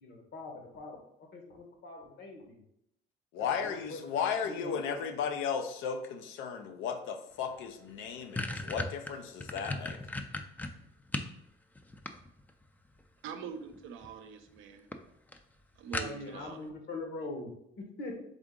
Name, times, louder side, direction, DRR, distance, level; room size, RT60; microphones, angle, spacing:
voice 1, 0.0-2.6 3.4-5.1 16.0-18.2, left 2 dB, 60° left, 2 dB, 1.1 m, -43 dB
voice 2, 3.3-10.0, left 7 dB, 85° left, 6 dB, 0.5 m, -35 dB
sound 1, 7.5-7.6 7.9-11.4 11.8-12.6 13.7-14.1 14.5-14.6 14.9-15.0 15.3-15.4 15.9-16.5, left 2 dB, 10° left, 0.3 m, -36 dB
voice 3, 13.2-14.9 15.8-16.6, right 7 dB, 80° right, 7 dB, 0.6 m, -43 dB
3.6 x 3.6 x 3.7 m, 0.77 s
cardioid pair, 105°, 20 cm